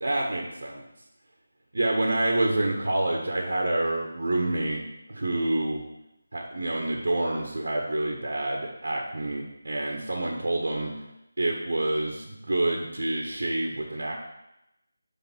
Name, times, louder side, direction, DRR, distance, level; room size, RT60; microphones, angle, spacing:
voice 1, 0.0-0.8 1.7-4.8 5.1-5.8 6.3-10.9 11.4-14.1, right 1 dB, 60° right, 0 dB, 1.6 m, -27 dB
10.0 x 3.6 x 6.2 m, 0.89 s
figure-of-eight pair, 180°, 0 cm